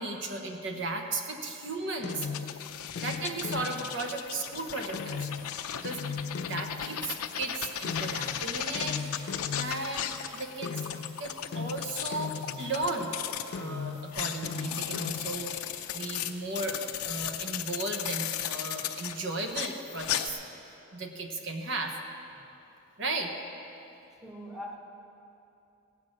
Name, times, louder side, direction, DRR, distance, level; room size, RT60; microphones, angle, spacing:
voice 1, 0.0-2.3 3.0-9.0 9.5-10.7 11.2-13.1 13.5-15.5 15.9-16.8 17.0-20.4 20.9-22.0 23.0-23.3, right 2 dB, 55° right, 3 dB, 1.1 m, -35 dB
sound 1, 2.0-7.3 7.8-13.1 13.5-15.9, left 5 dB, 50° left, 0.3 m, -39 dB
sound 2, 2.1-13.6 14.0-20.3, left 10 dB, 90° left, 0.6 m, -36 dB
voice 2, 24.2-24.8, left 1 dB, ahead, -2 dB, 1.1 m, -42 dB
16.5 x 8.3 x 6.4 m, 2.8 s
head